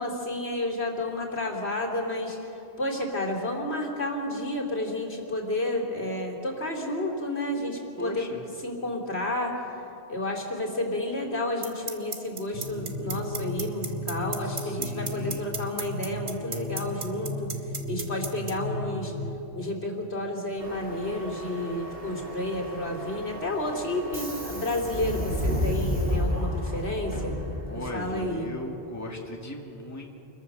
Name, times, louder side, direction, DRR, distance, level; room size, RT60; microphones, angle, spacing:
voice 1, 0.0-2.4 2.8-8.3 8.6-9.6 10.1-17.5 17.9-19.1 19.5-27.4 27.7-28.5, left 1 dB, 70° left, 1 dB, 3.3 m, -31 dB
voice 2, 8.0-8.4 14.4-15.6 27.7-30.3, left 1 dB, 15° left, 0 dB, 2.2 m, -38 dB
sound 1, 11.6-18.5, right 4 dB, 75° right, 2.0 m, -32 dB
sound 2, 12.5-19.4, left 1 dB, 40° right, 3.4 m, -35 dB
Subway metro underground, 20.6-28.0, equal, 55° right, 3.2 m, -32 dB
28.0 x 22.0 x 6.7 m, 3.0 s
omnidirectional pair, 1.1 m